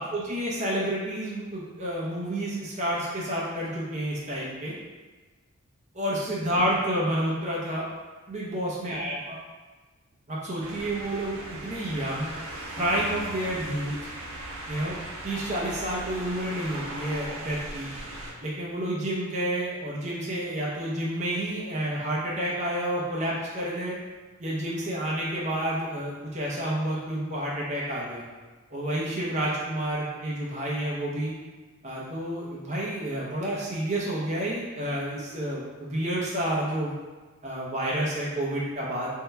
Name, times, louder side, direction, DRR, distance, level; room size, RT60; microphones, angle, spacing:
voice 1, 0.0-4.7 5.9-7.8 8.3-9.4 10.3-12.3 12.8-14.0 14.7-15.0 15.2-17.9 18.4-24.0 24.4-28.2 28.7-31.3 31.8-37.0 37.4-39.1, right 1 dB, 35° right, -6 dB, 0.7 m, -29 dB
sound 1, 10.6-18.3, right 1 dB, 85° right, 0.7 m, -38 dB
3.6 x 2.3 x 4.2 m, 1.3 s
head